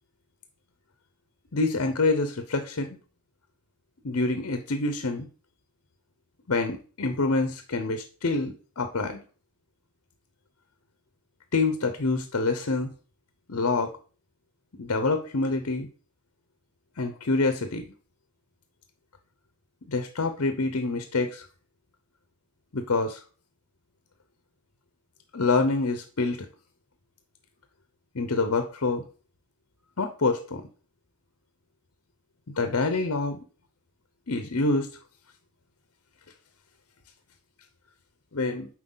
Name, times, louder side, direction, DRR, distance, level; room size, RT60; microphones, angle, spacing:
voice 1, 1.5-3.0 4.0-5.3 6.5-9.2 11.5-12.9 13.5-13.9 14.8-15.9 17.0-17.9 19.9-21.5 22.7-23.2 25.3-26.5 28.1-29.0 30.0-30.6 32.5-33.4 34.3-34.9 38.3-38.7, left 3 dB, 65° left, 8 dB, 0.7 m, -26 dB
7.5 x 4.7 x 3.9 m, 0.38 s
head